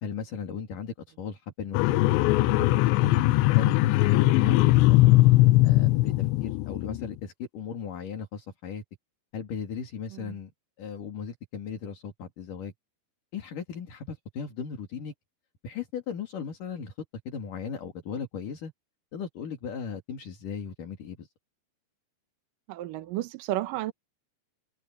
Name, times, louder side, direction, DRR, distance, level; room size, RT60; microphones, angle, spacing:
voice 1, 0.0-2.0 2.4-3.3 3.5-5.2 5.6-8.8 9.3-10.5 10.8-12.7 13.3-15.1 15.6-16.9 17.3-18.7 19.1-21.3, left 6 dB, 50° left, 4.1 m, -36 dB
sound 1, 1.7-7.0, left 18 dB, 85° left, 2.9 m, -20 dB
voice 2, 22.7-23.9, right 15 dB, 80° right, 2.0 m, -32 dB
omnidirectional pair, 5.1 m